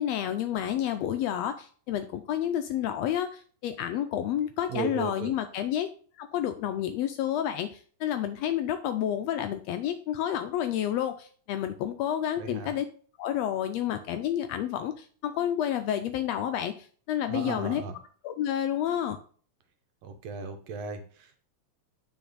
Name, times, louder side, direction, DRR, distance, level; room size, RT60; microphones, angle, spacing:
voice 1, 0.0-5.9 6.2-12.8 13.2-17.8 18.2-19.2, left 10 dB, 80° left, 8 dB, 1.6 m, -30 dB
voice 2, 4.7-5.3 12.4-12.7 17.3-17.9 20.0-21.4, right 4 dB, 70° right, 6 dB, 1.9 m, -35 dB
9.1 x 4.3 x 4.0 m, 0.43 s
omnidirectional pair, 3.3 m